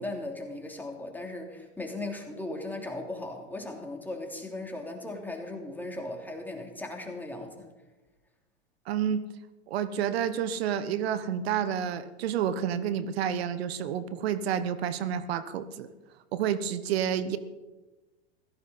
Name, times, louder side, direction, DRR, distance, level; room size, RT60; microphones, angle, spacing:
voice 1, 0.0-7.7, left 2 dB, 5° left, 1 dB, 3.2 m, -37 dB
voice 2, 8.9-9.2 9.7-15.9 16.3-17.4, right 9 dB, 65° right, 13 dB, 1.2 m, -29 dB
16.5 x 14.0 x 5.7 m, 1.2 s
hypercardioid pair, 105°, 33 cm